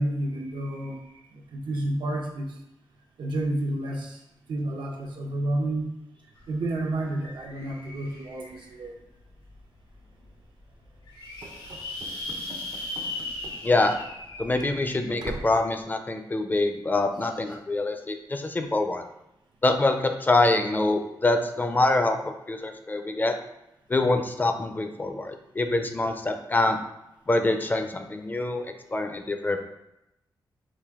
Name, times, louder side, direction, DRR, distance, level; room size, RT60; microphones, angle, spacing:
voice 1, 0.0-2.6 3.2-4.2 4.5-5.9 6.5-8.9 28.4-28.5, right 1 dB, 90° right, 0 dB, 0.8 m, -30 dB
sound 1, 6.4-6.5 6.7-8.8 9.4-9.5 9.9-10.0 10.2-10.3 10.8-15.4, left 2 dB, 85° left, 1.5 m, -38 dB
Run / Slam, 11.4-14.3 14.6-14.7 15.2-15.7, right 3 dB, 60° right, 0.5 m, -43 dB
voice 2, 13.6-13.9 14.4-19.1 19.6-23.3 23.9-26.8 27.3-29.6, left 2 dB, 25° left, 6 dB, 0.4 m, -25 dB
5.0 x 2.5 x 3.5 m, 0.86 s
wide cardioid pair, 115°, 8 cm